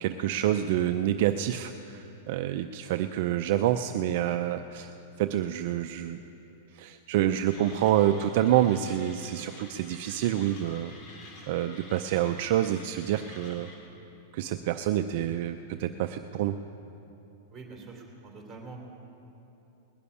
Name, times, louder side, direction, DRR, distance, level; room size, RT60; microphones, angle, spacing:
voice 1, 0.0-6.2 6.7-10.9 11.5-13.7 14.3-16.6, right 12 dB, 55° right, 8 dB, 0.5 m, -27 dB
Mechanisms, 7.5-13.8, left 2 dB, 30° left, 3.7 m, -50 dB
voice 2, 17.5-18.8, right 4 dB, 20° right, 1 dB, 3.1 m, -45 dB
19.5 x 6.9 x 9.8 m, 2.9 s
supercardioid pair, 150°, 0 cm